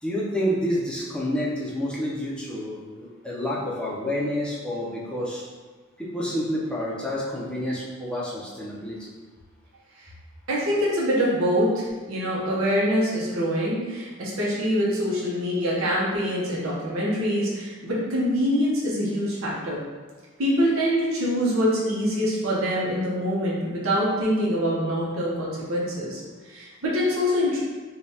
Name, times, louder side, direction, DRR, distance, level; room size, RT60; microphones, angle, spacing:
voice 1, 0.0-5.4 6.0-9.0, equal, 5° left, -5 dB, 0.6 m, -29 dB
voice 2, 10.5-19.8 20.4-26.2 26.5-27.6, equal, 75° right, -6 dB, 0.8 m, -24 dB
5.0 x 2.3 x 2.7 m, 1.3 s
head